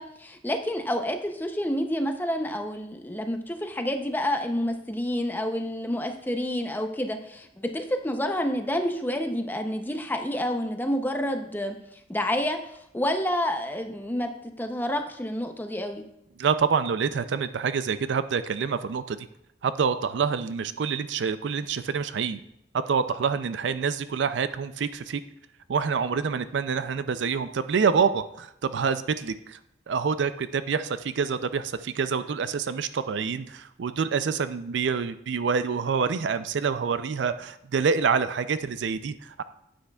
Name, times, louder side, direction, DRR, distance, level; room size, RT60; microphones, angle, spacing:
voice 1, 0.0-11.8 12.1-16.0, left 1 dB, 10° left, 5 dB, 0.6 m, -29 dB
voice 2, 16.4-19.2 19.6-22.4 22.7-25.2 25.7-29.6 29.9-39.4, right 6 dB, 75° right, 13 dB, 0.4 m, -27 dB
9.6 x 9.0 x 2.3 m, 0.78 s
head